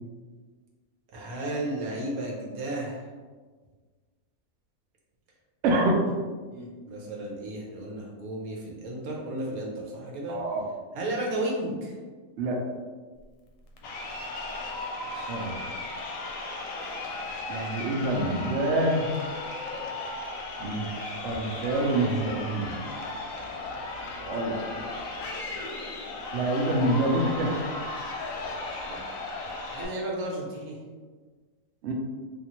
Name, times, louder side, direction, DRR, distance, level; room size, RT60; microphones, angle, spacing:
voice 1, 1.1-3.1 5.7-5.8 6.5-10.4 10.9-12.0 15.0-15.3 24.6-24.8 28.9-29.0 29.7-30.8, right 1 dB, 85° right, -2 dB, 1.2 m, -33 dB
voice 2, 5.6-5.9 10.3-10.6 12.4-12.6 15.3-15.6 17.5-19.0 20.6-22.7 24.2-24.5 26.3-27.6 31.8-31.9, right 1 dB, 65° right, 0 dB, 0.8 m, -26 dB
Crowd, 13.8-29.8, left 2 dB, 75° left, 0.9 m, -36 dB
3.5 x 2.4 x 2.9 m, 1.4 s
omnidirectional pair, 1.5 m